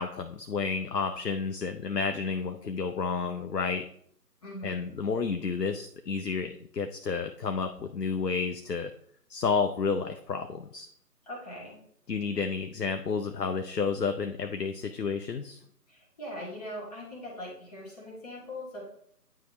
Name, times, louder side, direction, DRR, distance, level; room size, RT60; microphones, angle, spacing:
voice 1, 0.0-3.8 4.6-8.9 9.3-10.9 12.1-15.6, left 5 dB, 85° left, 6 dB, 0.7 m, -31 dB
voice 2, 4.4-4.9 11.3-11.8 15.9-18.8, left 1 dB, 25° left, -4 dB, 1.9 m, -41 dB
9.3 x 4.8 x 3.1 m, 0.66 s
figure-of-eight pair, 150°, 47 cm